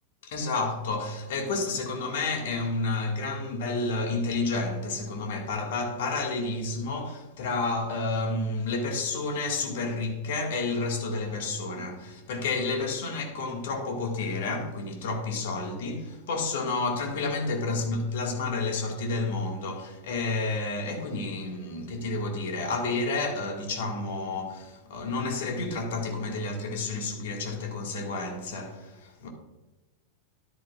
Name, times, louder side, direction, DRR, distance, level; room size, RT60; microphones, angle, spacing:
voice 1, 0.2-29.3, left 3 dB, 55° left, 1.9 m, -30 dB
12.5 x 11.0 x 2.5 m
figure-of-eight pair, 90°, 0 cm